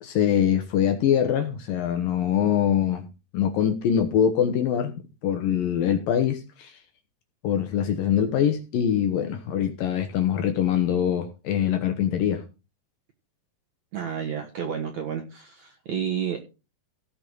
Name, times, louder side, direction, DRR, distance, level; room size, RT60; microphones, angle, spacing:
voice 1, 0.0-3.1 3.3-6.7 7.4-12.4, left 9 dB, 70° left, 2.4 m, -23 dB
voice 2, 13.9-16.4, right 8 dB, 60° right, 2.0 m, -30 dB
17.5 x 6.1 x 4.0 m
omnidirectional pair, 4.9 m